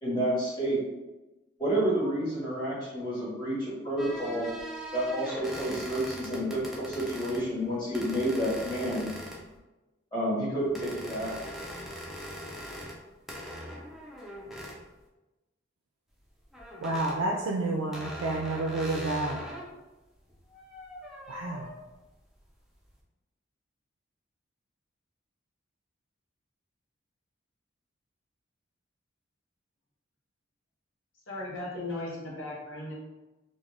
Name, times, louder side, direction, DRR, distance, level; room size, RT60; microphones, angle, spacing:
voice 1, 0.0-0.8 1.6-4.5 4.9-9.1 10.1-11.3, right 1 dB, 20° left, -9 dB, 1.1 m, -29 dB
sound 1, 4.0-7.4 7.9-9.6 10.7-13.0 13.3-14.8 16.5-17.2 17.9-19.7 20.3-21.8, equal, ahead, 0.4 m, -41 dB
voice 2, 16.8-19.4 21.3-21.7, right 2 dB, 75° right, -1 dB, 0.3 m, -30 dB
voice 3, 31.3-32.9, left 2 dB, 75° left, -4 dB, 0.8 m, -37 dB
2.4 x 2.2 x 3.3 m, 1.1 s
head